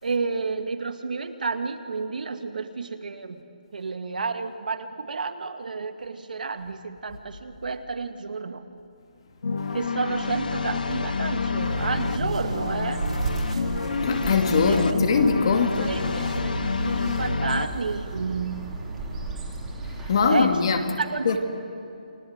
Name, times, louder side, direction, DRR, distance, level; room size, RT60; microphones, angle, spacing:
voice 1, 0.0-3.4 3.7-8.7 9.7-13.0 14.6-15.0 15.5-18.7 20.3-20.6 21.0-21.4, right 4 dB, 70° right, 7 dB, 2.0 m, -31 dB
sound 1, 9.4-17.7, left 4 dB, 75° left, 1.6 m, -28 dB
Bird, 10.9-20.6, right 2 dB, 5° right, 3.3 m, -37 dB
sound 2, 11.6-19.3, right 3 dB, 50° right, 4.1 m, -35 dB
voice 2, 14.0-15.9 20.1-20.8 21.3-21.4, left 5 dB, 35° left, 5 dB, 2.4 m, -21 dB
29.5 x 23.5 x 8.1 m, 2.6 s
hypercardioid pair, 170°, 5 cm